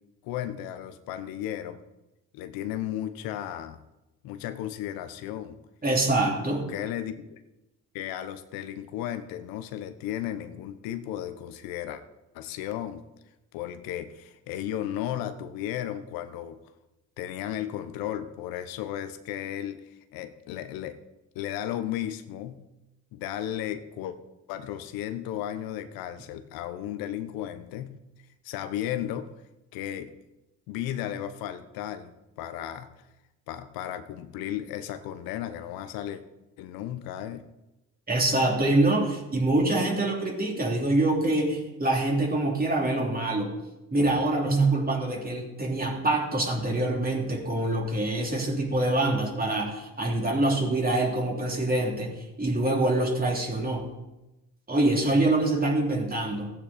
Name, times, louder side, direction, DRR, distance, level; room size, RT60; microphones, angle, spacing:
voice 1, 0.2-1.8 2.3-3.8 4.2-5.6 6.4-7.4 7.9-12.0 12.3-13.1 13.5-16.6 17.2-21.0 21.3-22.6 23.1-24.2 24.5-27.9 28.4-29.3 29.7-30.1 30.7-32.9 33.5-36.2 36.6-37.5, left 11 dB, 85° left, 10 dB, 1.0 m, -34 dB
voice 2, 5.8-6.7 38.1-43.6 43.9-53.9 54.7-56.5, right 2 dB, 25° right, 0 dB, 3.3 m, -25 dB
15.5 x 8.9 x 4.3 m, 0.98 s
supercardioid pair, 75°, 35 cm